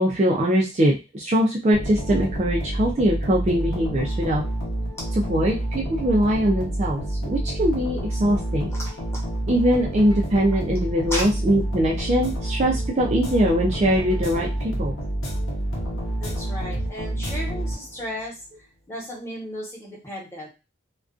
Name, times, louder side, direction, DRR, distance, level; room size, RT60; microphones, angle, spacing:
voice 1, 0.0-4.4 5.3-8.7 9.5-15.0, equal, 35° right, -3 dB, 0.4 m, -22 dB
sound 1, 1.7-18.2, right 1 dB, 85° left, 0.9 m, -28 dB
voice 2, 16.2-18.4 18.9-20.5, equal, 10° left, -5 dB, 1.0 m, -34 dB
2.4 x 2.2 x 2.4 m, 0.28 s
head